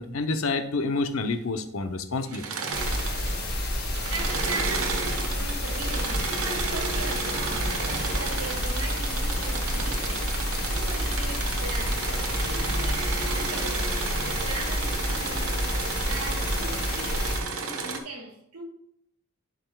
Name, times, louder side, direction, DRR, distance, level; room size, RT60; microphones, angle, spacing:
voice 1, 0.0-2.4, left 3 dB, 65° left, 0.7 m, -28 dB
Engine / Mechanisms, 2.2-3.6 3.8-18.0, right 4 dB, 70° right, 1.1 m, -32 dB
sound 1, 2.7-17.4, left 1 dB, 45° left, 1.7 m, -29 dB
voice 2, 4.1-12.1 12.4-15.5 16.1-18.6, right 2 dB, 85° right, 2.0 m, -39 dB
11.0 x 5.0 x 2.3 m
head